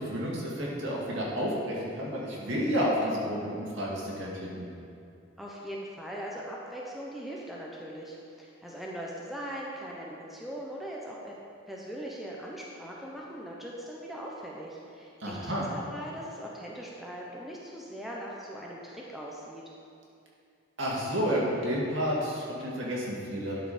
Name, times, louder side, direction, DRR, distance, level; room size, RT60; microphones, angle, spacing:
voice 1, 0.0-4.7 15.2-15.6 20.8-23.6, equal, 70° right, -5 dB, 2.0 m, -30 dB
voice 2, 5.4-11.4 11.7-19.6, equal, ahead, -4 dB, 0.7 m, -40 dB
11.0 x 4.8 x 5.0 m, 2.5 s
head